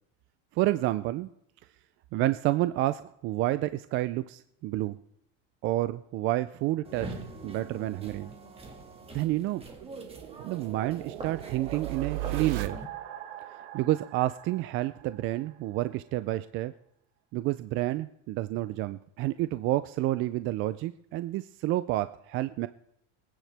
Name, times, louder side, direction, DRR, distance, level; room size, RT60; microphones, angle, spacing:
voice 1, 0.5-1.3 2.1-5.0 5.6-7.1 7.4-8.3 9.1-9.6 10.4-12.8 13.7-16.7 17.3-22.7, right 16 dB, 35° right, 13 dB, 0.4 m, -29 dB
sound 1, 6.8-12.9, right 2 dB, 15° right, 1.9 m, -44 dB
sound 2, 8.7-15.5, right 14 dB, 70° right, 1.3 m, -39 dB
24.5 x 9.4 x 3.4 m, 0.75 s
supercardioid pair, 145°, 37 cm